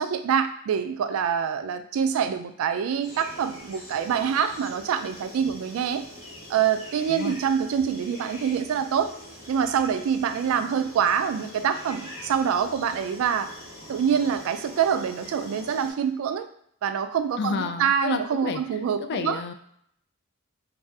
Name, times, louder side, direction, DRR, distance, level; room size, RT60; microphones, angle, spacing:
voice 1, 0.0-6.0 6.5-9.1 9.5-13.5 13.9-16.5 16.8-19.4, right 7 dB, 75° right, 9 dB, 0.3 m, -25 dB
sound 1, 3.0-15.9, left 1 dB, 30° left, 1.2 m, -43 dB
voice 2, 17.4-18.6 19.1-19.5, left 5 dB, 55° left, 7 dB, 0.3 m, -30 dB
2.6 x 2.3 x 3.4 m, 0.68 s
head